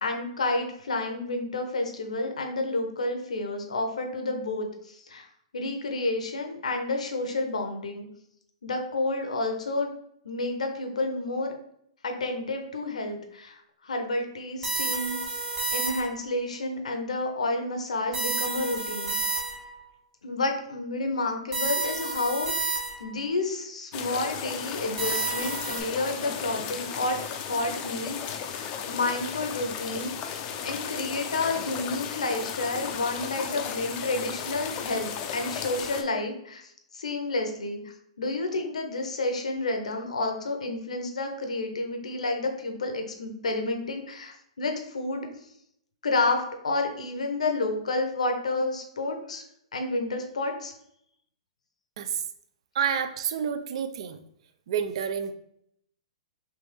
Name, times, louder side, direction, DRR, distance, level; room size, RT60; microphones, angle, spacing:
voice 1, 0.0-5.3 5.5-8.1 8.6-9.9 10.2-11.5 12.0-15.2 15.7-19.2 20.2-28.2 28.5-30.1 30.6-45.3 46.0-49.4 49.7-50.7, left 2 dB, 90° left, 4 dB, 0.8 m, -30 dB
sound 1, 14.6-16.3 18.1-19.8 21.5-23.2 25.0-25.8, right 3 dB, 20° right, 1.3 m, -30 dB
sound 2, 23.9-36.0, left 7 dB, 30° left, 0.4 m, -35 dB
voice 2, 52.7-54.2 54.7-55.3, right 7 dB, 60° right, 10 dB, 0.4 m, -29 dB
3.3 x 3.1 x 3.3 m, 0.72 s
hypercardioid pair, 135°, 4 cm